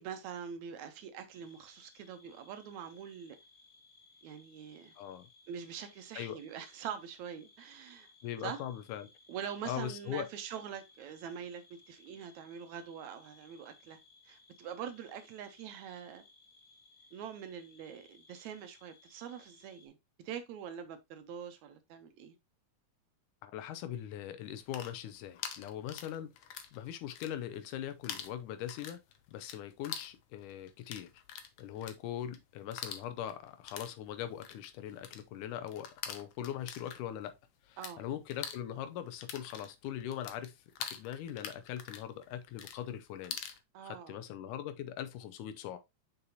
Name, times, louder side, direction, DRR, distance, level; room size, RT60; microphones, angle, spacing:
voice 1, 0.0-3.4 4.2-4.9 5.5-8.1 8.4-8.6 9.3-14.0 14.3-16.2 17.1-20.0 20.2-22.4 37.8-38.0 43.7-44.2, right 8 dB, 75° right, 2.0 m, -44 dB
sound 1, 1.3-19.9, left 3 dB, 45° left, 1.1 m, -62 dB
voice 2, 5.0-5.3 6.2-6.4 8.2-9.1 9.7-10.3 23.4-26.3 26.7-29.0 29.3-31.1 31.6-37.3 37.6-43.4 43.8-45.8, left 10 dB, 85° left, 2.2 m, -41 dB
sound 2, 24.5-26.8 27.0-27.8 28.0-38.0 38.2-43.6, left 8 dB, 70° left, 1.5 m, -45 dB
6.8 x 5.5 x 2.8 m
omnidirectional pair, 3.7 m